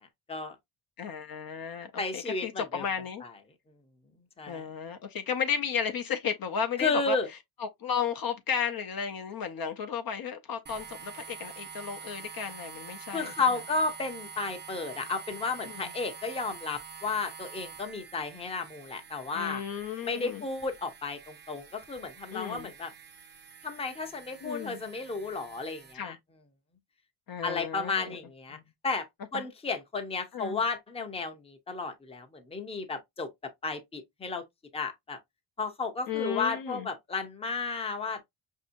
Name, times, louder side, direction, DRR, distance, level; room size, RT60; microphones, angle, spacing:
voice 1, 1.0-3.2 4.5-7.2 7.6-13.3 15.7-15.9 19.3-20.4 22.3-22.7 24.4-24.8 25.9-26.2 27.3-28.2 28.5-28.6 29.3-29.4 30.3-30.6 36.1-36.9, left 7 dB, 50° left, 0.6 m, -34 dB
voice 2, 2.0-2.8 3.2-3.3 4.4-4.7 6.8-7.3 13.1-19.6 20.0-22.9 23.6-26.2 27.4-29.1 29.3-33.3 33.6-34.4 34.7-35.2 35.6-38.2, left 4 dB, 15° left, 0.7 m, -33 dB
sound 1, 10.7-25.9, right 6 dB, 25° right, 0.5 m, -47 dB
5.3 x 2.7 x 2.5 m
cardioid pair, 125°, 47 cm